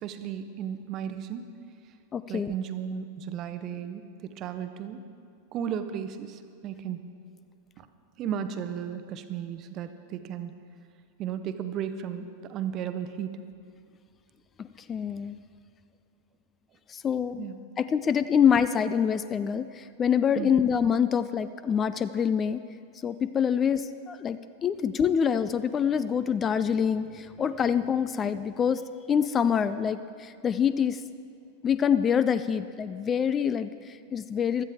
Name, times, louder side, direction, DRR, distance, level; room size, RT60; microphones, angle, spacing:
voice 1, 0.0-1.5 2.3-5.0 5.5-7.0 7.8-7.9 8.2-10.5 11.2-13.4 17.4-17.6 20.4-20.5, right 8 dB, 35° right, 10 dB, 0.8 m, -34 dB
voice 2, 2.1-2.5 14.6-15.4 16.9-17.5 17.8-22.6 23.0-28.8 29.1-31.0 31.6-34.6, left 7 dB, 25° left, 13 dB, 0.4 m, -26 dB
16.5 x 13.0 x 3.5 m, 2.4 s
figure-of-eight pair, 90°, 0 cm